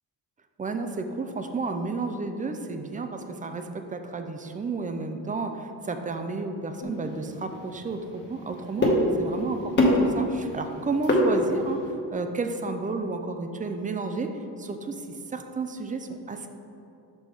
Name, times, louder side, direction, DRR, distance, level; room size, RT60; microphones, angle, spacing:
voice 1, 0.6-15.0 15.3-16.5, right 3 dB, 20° right, 6 dB, 0.3 m, -32 dB
sound 1, 6.8-11.9, left 1 dB, 25° left, 1.1 m, -26 dB
5.8 x 5.3 x 4.7 m, 2.8 s
cardioid pair, 130°, 42 cm